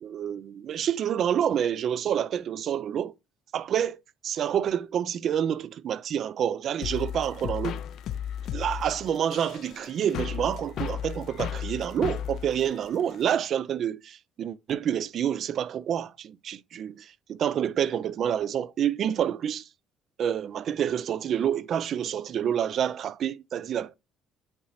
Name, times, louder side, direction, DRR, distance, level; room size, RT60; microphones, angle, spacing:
voice 1, 0.0-3.1 3.5-7.8 8.5-19.7 20.2-24.0, right 9 dB, 50° right, 0.4 m, -28 dB
sound 1, 6.8-13.5, left 9 dB, 60° left, 0.5 m, -35 dB
8.6 x 2.9 x 4.1 m
cardioid pair, 120°, 0 cm